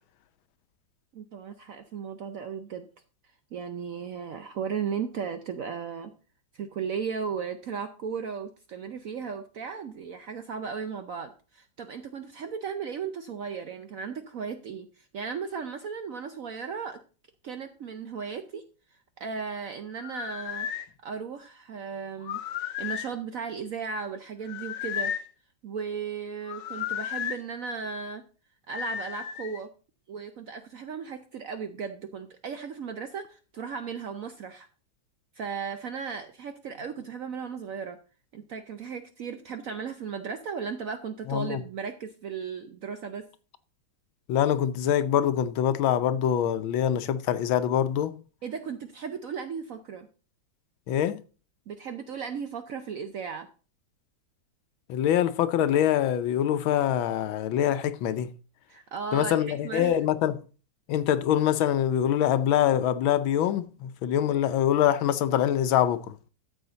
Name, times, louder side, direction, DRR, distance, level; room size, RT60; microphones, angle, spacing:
voice 1, 1.1-2.9 3.5-6.1 6.5-17.0 17.4-18.6 19.2-20.7 21.0-25.1 25.6-28.2 28.7-29.7 30.1-34.7 35.4-38.0 38.3-43.2 48.4-50.1 51.7-53.5 58.7-60.0, right 6 dB, 65° right, 0.8 m, -36 dB
sound 1, 20.0-20.9 22.2-23.1 24.4-25.3 26.5-27.4 28.7-29.6, left 9 dB, 70° left, 1.3 m, -34 dB
voice 2, 41.3-41.6 44.3-48.2 50.9-51.2 54.9-58.3 59.1-60.4 60.9-66.1, left 10 dB, 90° left, 1.5 m, -24 dB
13.0 x 7.2 x 3.9 m
omnidirectional pair, 2.1 m